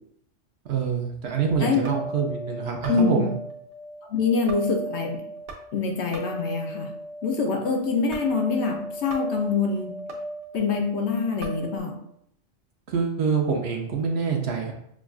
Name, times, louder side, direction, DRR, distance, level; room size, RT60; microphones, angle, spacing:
voice 1, 0.6-3.3 12.9-14.7, right 6 dB, 60° right, 1 dB, 0.8 m, -26 dB
sound 1, 1.3-11.8, right 1 dB, 85° right, 1.1 m, -37 dB
voice 2, 2.9-3.3 4.1-5.2 5.7-6.9 7.2-10.0 10.5-12.0, left 4 dB, 65° left, 2 dB, 0.8 m, -25 dB
6.0 x 2.3 x 2.3 m, 0.72 s
omnidirectional pair, 1.3 m